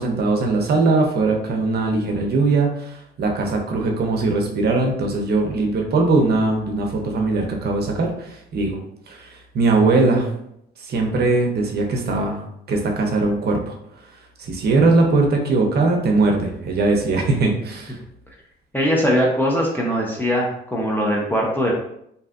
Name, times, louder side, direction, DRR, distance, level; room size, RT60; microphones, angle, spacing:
voice 1, 0.0-8.8 9.1-10.3 10.8-12.4 12.7-13.7 14.4-18.0, right 3 dB, 55° right, 2 dB, 0.6 m, -20 dB
voice 2, 18.7-21.7, equal, 10° left, -3 dB, 0.5 m, -21 dB
2.6 x 2.3 x 2.3 m, 0.74 s
cardioid pair, 90°, 20 cm